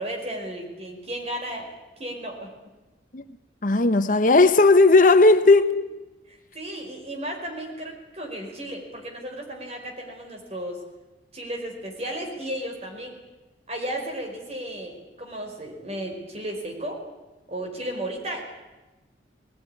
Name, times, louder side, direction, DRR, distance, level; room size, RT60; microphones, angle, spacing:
voice 1, 0.0-1.7 2.0-2.5 6.3-10.8 11.3-13.2 13.7-17.0 17.5-18.4, right 1 dB, 35° right, 4.9 m, -34 dB
voice 2, 3.6-5.7, left 3 dB, 45° left, 0.8 m, -16 dB
20.0 x 17.5 x 9.9 m
head